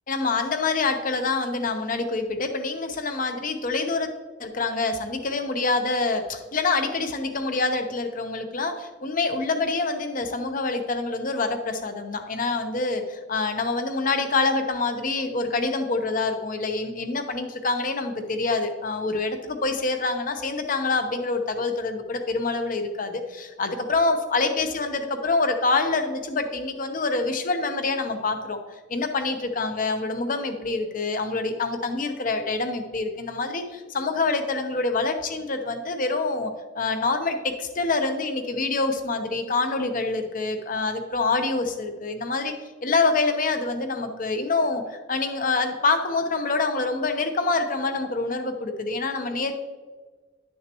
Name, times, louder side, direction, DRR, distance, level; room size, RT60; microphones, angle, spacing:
voice 1, 0.1-4.1 4.4-28.6 28.9-42.5 42.8-49.5, left 3 dB, 50° left, 7 dB, 0.8 m, -26 dB
11.0 x 6.4 x 3.0 m, 1.3 s
head